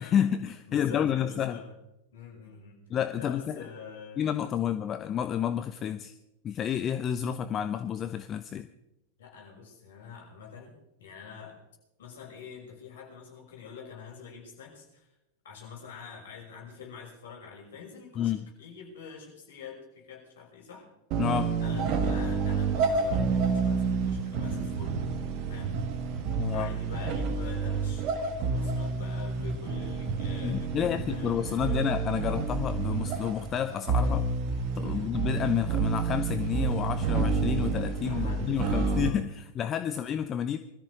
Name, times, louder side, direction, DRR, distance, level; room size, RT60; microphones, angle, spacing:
voice 1, 0.0-1.6 2.9-3.6 4.2-6.1 6.4-8.7 18.2-18.5 21.2-21.5 26.3-26.8 30.4-34.3 34.7-40.6, left 9 dB, 30° left, 11 dB, 0.8 m, -30 dB
voice 2, 0.7-1.7 2.1-2.8 3.2-4.3 9.2-11.6 12.0-15.1 15.4-20.9 21.6-25.0 25.5-25.8 26.5-31.9 34.9-35.2 38.0-39.2 39.8-40.4, left 6 dB, 60° left, 0 dB, 6.0 m, -46 dB
sound 1, 21.1-39.1, right 4 dB, 40° right, 1.7 m, -29 dB
20.5 x 13.5 x 4.9 m, 0.89 s
figure-of-eight pair, 90°, 0 cm